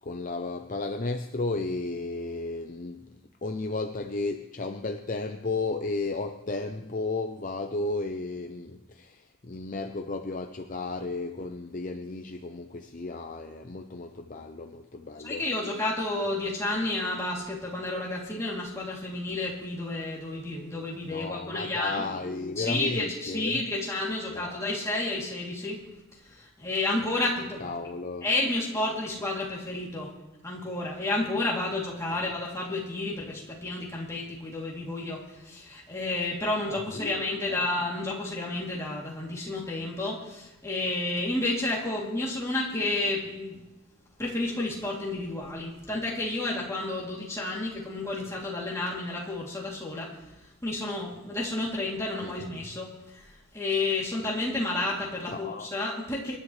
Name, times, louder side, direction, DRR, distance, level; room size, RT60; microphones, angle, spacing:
voice 1, 0.0-3.1 3.4-15.4 21.1-23.6 24.3-24.6 27.6-28.3 32.1-32.2 36.7-37.7 52.2-52.4 55.3-55.7, left 3 dB, 35° left, 6 dB, 0.6 m, -34 dB
voice 2, 15.2-22.0 22.6-25.8 26.2-27.7 28.2-30.1 30.4-43.6 44.2-56.4, left 2 dB, 15° left, -4 dB, 2.9 m, -31 dB
25.0 x 11.0 x 3.3 m, 0.97 s
head